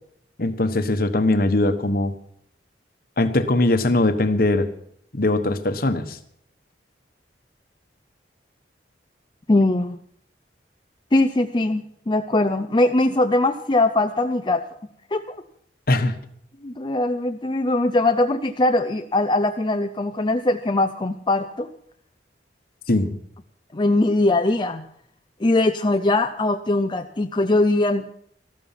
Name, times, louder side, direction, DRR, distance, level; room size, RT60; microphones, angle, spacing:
voice 1, 0.4-2.1 3.2-4.7 5.1-6.2 15.9-16.1 22.9-23.2, left 2 dB, 55° left, 9 dB, 1.2 m, -20 dB
voice 2, 9.5-10.0 11.1-14.6 15.1-15.2 16.6-21.7 23.7-24.9 25.4-28.1, left 2 dB, 25° left, 6 dB, 0.5 m, -21 dB
14.0 x 12.5 x 5.8 m, 0.66 s
head